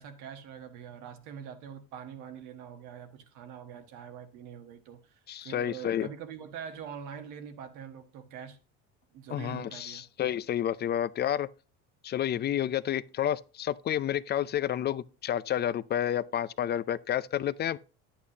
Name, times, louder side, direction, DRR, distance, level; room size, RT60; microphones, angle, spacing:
voice 1, 0.0-8.6 9.1-10.0, right 8 dB, 75° right, 1.4 m, -44 dB
voice 2, 5.3-6.1 9.3-11.5 12.0-17.8, left 10 dB, 35° left, 0.5 m, -30 dB
9.4 x 8.4 x 2.9 m
supercardioid pair, 100°, 31 cm